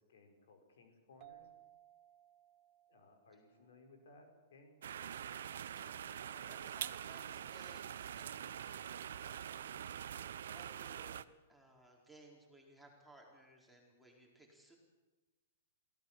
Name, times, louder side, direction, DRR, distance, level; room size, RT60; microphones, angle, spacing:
voice 1, 0.1-1.4 2.9-4.8, left 3 dB, 75° left, 4 dB, 5.1 m, -62 dB
sound 1, 1.2-4.5, right 13 dB, 35° right, 1.5 m, -62 dB
sound 2, 4.8-11.2, right 9 dB, 75° right, 0.8 m, -45 dB
voice 2, 6.2-8.8 10.5-14.8, right 1 dB, ahead, -2 dB, 4.4 m, -61 dB
23.0 x 17.0 x 7.5 m, 1.2 s
hypercardioid pair, 145°, 0 cm